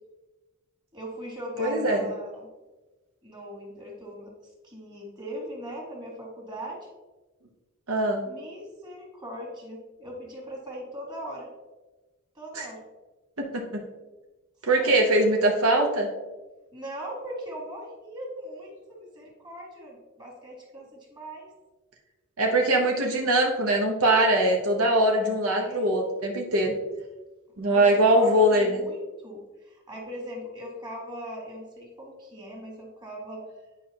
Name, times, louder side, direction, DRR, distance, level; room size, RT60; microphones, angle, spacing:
voice 1, 0.9-2.5 3.2-4.3 4.6-6.9 8.3-11.5 12.4-12.8 14.7-15.0 16.7-21.5 25.6-25.9 27.6-27.9 28.1-33.4, equal, 20° right, -2 dB, 2.0 m, -40 dB
voice 2, 1.6-2.0 7.9-8.2 12.5-12.7 13.4-13.8 14.6-16.1 22.4-26.7 27.6-28.8, right 1 dB, 75° right, 1 dB, 0.9 m, -22 dB
9.2 x 5.0 x 2.8 m, 1.2 s
head